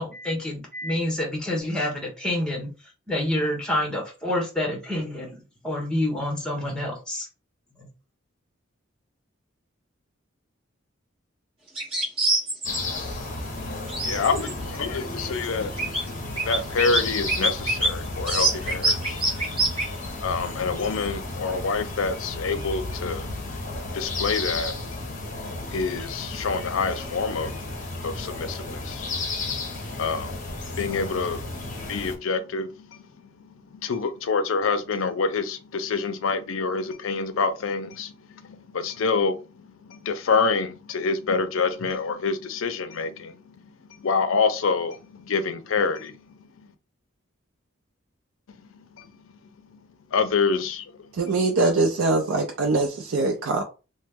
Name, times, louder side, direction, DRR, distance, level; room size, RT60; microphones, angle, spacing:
voice 1, 0.0-2.7 3.1-7.3 7.8-7.9, left 1 dB, 5° left, 1.0 m, -28 dB
sound 1, 11.8-12.8 13.9-14.8 15.4-15.5 15.8-16.1 16.4-17.0 17.3-17.9 18.3-19.8, right 2 dB, 25° right, 1.1 m, -24 dB
sound 2, 12.6-32.2, left 2 dB, 40° left, 0.7 m, -33 dB
voice 2, 13.6-46.7 48.5-49.3 49.6-49.8 50.1-51.1, left 4 dB, 75° left, 0.5 m, -28 dB
voice 3, 51.1-53.6, right 3 dB, 80° right, 0.4 m, -23 dB
3.0 x 2.1 x 3.4 m
head